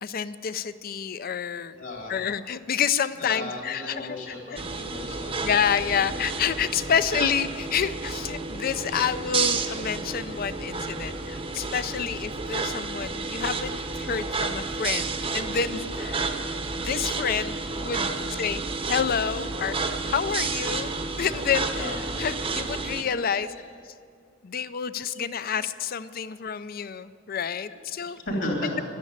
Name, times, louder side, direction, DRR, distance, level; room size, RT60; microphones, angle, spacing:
voice 1, 0.0-1.8 2.1-4.9 5.4-16.3 16.8-19.8 20.1-20.9 21.2-21.9 22.2-23.5 24.4-28.2, left 7 dB, 50° left, 14 dB, 0.5 m, -29 dB
voice 2, 1.7-2.1 3.2-5.5 6.0-6.2 8.7-9.0 17.6-17.7 18.0-18.6 19.3-19.5 21.7-22.0 23.4-23.6 25.1-25.2 27.7-27.8 28.3-28.7, left 1 dB, 65° left, -1 dB, 3.6 m, -35 dB
sound 1, 4.6-23.0, right 3 dB, 30° right, 0.8 m, -31 dB
12.0 x 10.5 x 8.6 m, 2.2 s
head